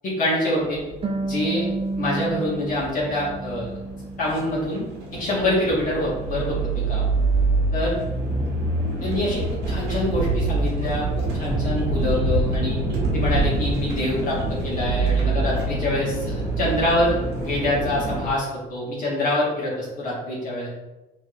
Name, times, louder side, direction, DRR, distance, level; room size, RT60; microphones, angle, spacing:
voice 1, 0.0-0.8 1.2-1.6 2.0-3.7 4.2-7.1 7.7-8.0 9.0-12.8 13.1-20.7, left 1 dB, 50° left, -7 dB, 1.5 m, -25 dB
sound 1, 0.6-18.3, right 2 dB, 85° right, 1.2 m, -26 dB
Harp, 1.0-4.4 4.8-5.8, right 2 dB, 35° right, 0.6 m, -31 dB
5.0 x 3.2 x 2.5 m, 1.1 s
cardioid pair, 110°, 17 cm